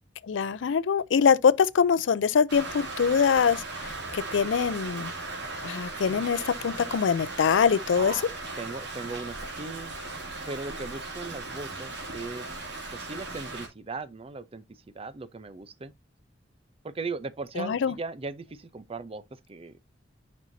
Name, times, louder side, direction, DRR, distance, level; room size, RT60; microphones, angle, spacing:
voice 1, 0.3-3.6 4.1-5.1 5.6-8.2 17.6-17.9, left 6 dB, 90° left, 0.4 m, -23 dB
Rain, 2.5-13.7, right 3 dB, 70° right, 2.4 m, -37 dB
voice 2, 8.0-8.3 8.6-9.9 10.5-12.5 12.9-14.6 14.9-15.9 16.8-19.2 19.5-19.8, right 3 dB, 30° right, 0.5 m, -38 dB
9.0 x 5.4 x 2.6 m
head